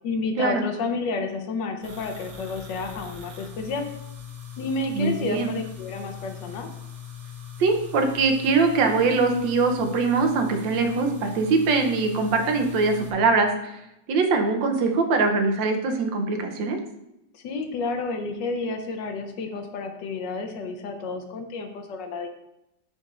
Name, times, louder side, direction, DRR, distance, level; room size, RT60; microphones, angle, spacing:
voice 1, 0.0-3.9 4.6-6.7 17.3-22.3, left 3 dB, 70° left, 5 dB, 1.3 m, -30 dB
sound 1, 1.8-13.1, left 7 dB, 55° right, 1.3 m, -40 dB
voice 2, 4.9-5.5 7.6-13.7 14.1-16.8, right 4 dB, 75° right, 5 dB, 1.4 m, -22 dB
10.0 x 4.1 x 2.4 m, 0.86 s
omnidirectional pair, 2.1 m